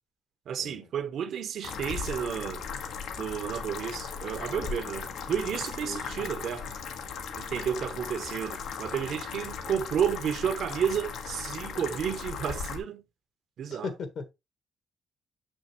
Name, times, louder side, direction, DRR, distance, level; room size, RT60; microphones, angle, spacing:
voice 1, 0.5-2.7 3.2-6.7 7.3-13.0 13.6-13.9, right 8 dB, 55° right, 0.7 m, -31 dB
sound 1, 1.6-12.8, left 6 dB, 85° left, 1.4 m, -37 dB
voice 2, 5.8-6.3 13.7-14.3, left 4 dB, 55° left, 1.4 m, -38 dB
6.6 x 6.2 x 3.0 m
cardioid pair, 170°, 0 cm